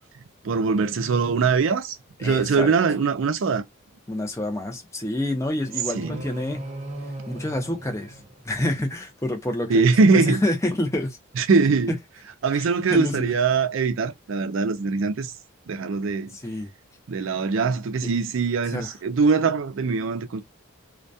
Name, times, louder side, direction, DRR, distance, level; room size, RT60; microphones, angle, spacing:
voice 1, 0.4-2.0 2.2-3.6 5.9-6.2 9.7-10.4 11.4-11.9 12.4-15.3 15.7-16.3 17.1-20.4, right 4 dB, 70° right, 0.4 m, -22 dB
voice 2, 2.2-2.7 4.1-6.7 7.3-8.2 8.4-11.2 11.9-12.0 12.5-13.3 16.3-16.7 18.0-18.1 18.7-18.9, left 1 dB, 15° left, 0.6 m, -28 dB
sound 1, 5.6-8.9, right 1 dB, 35° right, 0.7 m, -38 dB
2.2 x 2.2 x 2.6 m
head